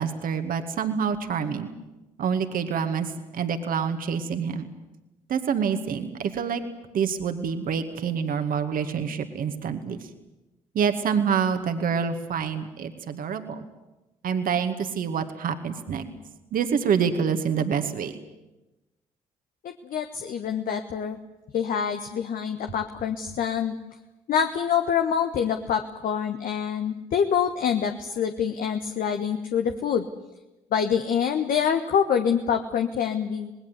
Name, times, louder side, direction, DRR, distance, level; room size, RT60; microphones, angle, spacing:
voice 1, 0.0-1.7 2.2-4.6 5.3-6.6 6.9-10.0 10.7-13.6 14.2-16.0 16.5-18.1, right 7 dB, 60° right, 7 dB, 2.3 m, -27 dB
voice 2, 19.8-21.2 21.5-23.8 24.3-30.1 30.7-33.5, left 7 dB, 60° left, 6 dB, 1.4 m, -26 dB
26.5 x 20.0 x 8.3 m, 1.0 s
hypercardioid pair, 45°, 16 cm